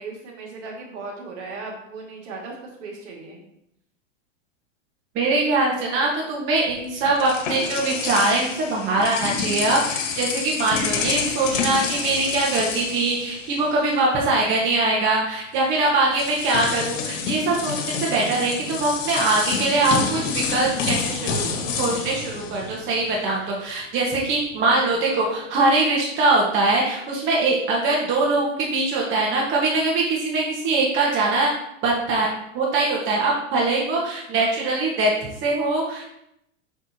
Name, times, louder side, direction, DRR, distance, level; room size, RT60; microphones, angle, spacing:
voice 1, 0.0-3.5, right 3 dB, 65° right, -1 dB, 2.1 m, -37 dB
voice 2, 5.1-31.5 31.8-32.3 32.5-35.1 35.4-36.1, right 2 dB, 30° right, -3 dB, 1.4 m, -22 dB
sound 1, 6.7-14.0 14.2-14.4 15.6-15.7 16.1-23.3, left 5 dB, 75° left, 1.4 m, -28 dB
6.1 x 5.9 x 2.8 m, 0.79 s
supercardioid pair, 145°, 38 cm